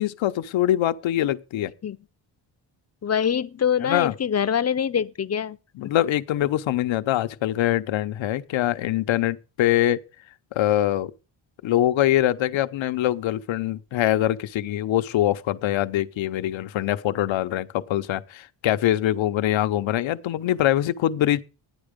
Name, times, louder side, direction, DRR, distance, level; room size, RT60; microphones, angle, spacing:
voice 1, 0.0-1.7 3.8-4.1 5.7-10.0 10.5-11.1 11.6-21.4, left 13 dB, 85° left, 0.8 m, -23 dB
voice 2, 3.0-5.6, left 8 dB, 35° left, 0.6 m, -24 dB
12.5 x 9.6 x 5.1 m
cardioid pair, 95°, 45 cm